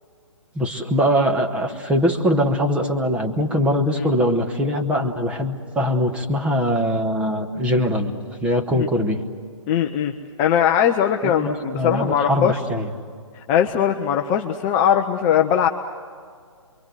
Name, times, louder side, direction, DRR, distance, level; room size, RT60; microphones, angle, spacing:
voice 1, 0.5-8.1 8.4-9.2 11.2-12.9, equal, 5° right, 3 dB, 1.2 m, -22 dB
voice 2, 9.7-10.1 10.4-12.6 13.5-15.7, left 9 dB, 20° left, 4 dB, 0.7 m, -20 dB
28.0 x 23.5 x 7.8 m, 2.1 s
figure-of-eight pair, 135°, 17 cm